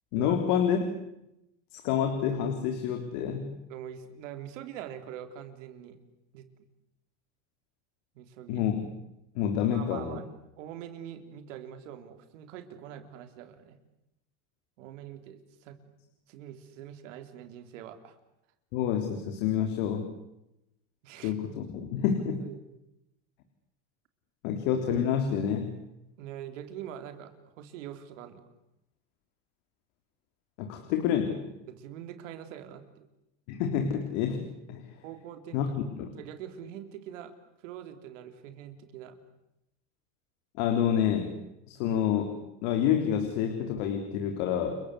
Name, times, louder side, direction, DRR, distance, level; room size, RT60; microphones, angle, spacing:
voice 1, 0.1-0.8 1.7-3.5 8.5-8.9 9.4-10.2 18.7-20.1 21.2-22.4 24.4-25.7 30.6-31.4 33.5-34.8 35.5-35.7 36.0-36.1 40.6-41.4 41.7-42.3 42.6-44.8, left 8 dB, 70° left, 5 dB, 3.8 m, -28 dB
voice 2, 3.7-6.0 6.3-6.5 8.2-8.6 9.7-10.3 10.6-13.8 14.8-15.9 16.3-18.2 21.0-21.3 22.4-22.6 26.2-28.4 31.7-33.1 35.0-35.7 36.1-37.3 37.6-39.2, right 10 dB, 85° right, 8 dB, 3.7 m, -44 dB
30.0 x 22.5 x 8.4 m, 0.86 s
supercardioid pair, 130°, 37 cm